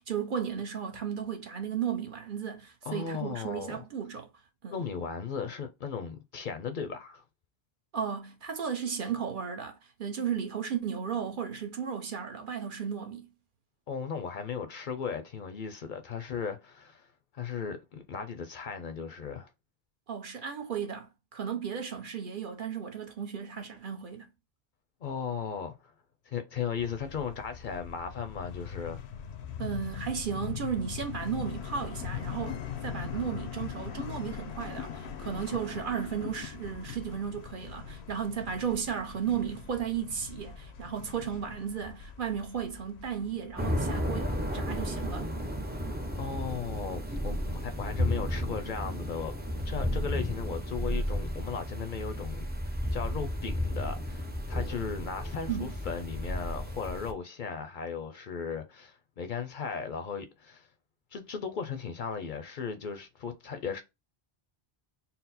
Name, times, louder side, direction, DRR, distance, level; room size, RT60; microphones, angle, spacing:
voice 1, 0.0-4.3 4.6-4.8 7.9-13.3 20.1-24.3 29.6-45.3 55.5-55.7, right 7 dB, 55° right, 0.9 m, -34 dB
voice 2, 2.8-3.8 4.7-7.2 13.9-17.1 17.3-19.5 25.0-25.7 26.3-29.0 46.2-49.3 49.7-52.5 52.9-60.7 61.1-63.8, left 6 dB, 60° left, 0.6 m, -36 dB
sound 1, 26.8-44.6, left 8 dB, 85° left, 0.9 m, -41 dB
sound 2, 43.6-57.1, equal, 15° right, 0.4 m, -33 dB
4.2 x 2.0 x 4.0 m
omnidirectional pair, 1.0 m